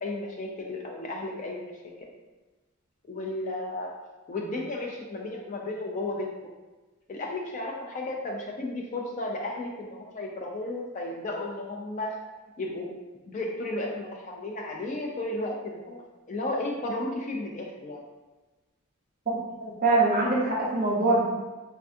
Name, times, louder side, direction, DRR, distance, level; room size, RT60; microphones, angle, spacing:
voice 1, 0.0-1.7 3.1-3.9 4.3-6.3 7.1-12.2 12.6-12.9 13.3-16.0 16.3-18.0, left 2 dB, 35° left, 0 dB, 0.3 m, -33 dB
voice 2, 19.6-21.2, right 2 dB, 40° right, -5 dB, 0.8 m, -23 dB
3.4 x 2.3 x 2.5 m, 1.2 s
head